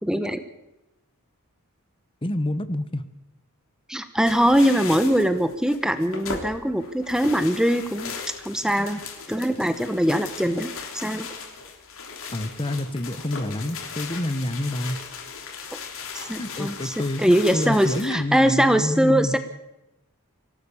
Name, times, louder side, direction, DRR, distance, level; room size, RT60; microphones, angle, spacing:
voice 1, 0.0-0.4 3.9-8.1 8.4-9.0 9.3-11.3 16.1-19.4, equal, 5° right, 10 dB, 1.0 m, -22 dB
voice 2, 2.2-3.0 12.3-15.0 16.4-19.4, left 1 dB, 25° left, 12 dB, 1.2 m, -28 dB
sound 1, 4.2-18.1, left 5 dB, 65° left, 3.4 m, -37 dB
25.0 x 17.0 x 7.2 m, 0.95 s
head